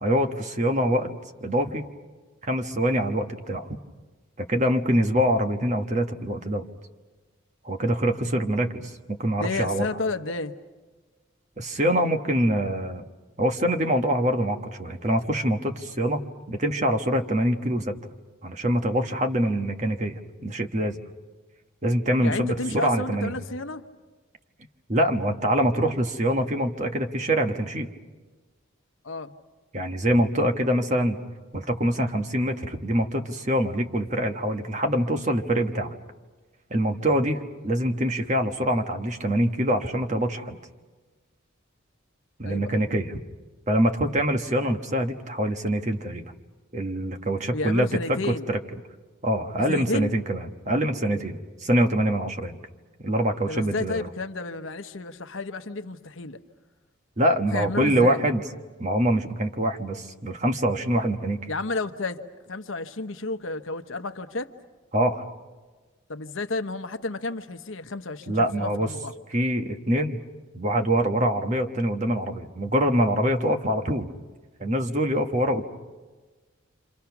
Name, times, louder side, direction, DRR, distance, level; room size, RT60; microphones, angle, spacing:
voice 1, 0.0-1.1 1.4-1.8 2.5-3.7 4.4-6.6 7.6-9.9 11.6-13.0 13.4-16.2 16.5-17.9 18.4-21.0 21.8-23.3 24.9-27.9 29.7-31.2 31.5-35.9 36.7-37.4 37.6-40.6 42.4-43.1 43.7-46.3 46.7-48.6 49.2-52.6 53.0-54.0 57.2-58.4 58.8-61.5 64.9-65.2 68.3-68.9 69.3-70.2 70.5-74.1 74.6-75.6, equal, 35° right, 4 dB, 1.3 m, -24 dB
voice 2, 9.4-10.5 22.2-23.8 29.0-29.3 42.5-42.8 47.5-48.5 49.7-50.1 53.4-56.4 57.5-58.2 61.5-62.2 62.5-64.5 66.1-69.1 75.1-75.2, left 3 dB, 70° left, 8 dB, 1.0 m, -31 dB
29.5 x 26.0 x 6.0 m, 1.3 s
head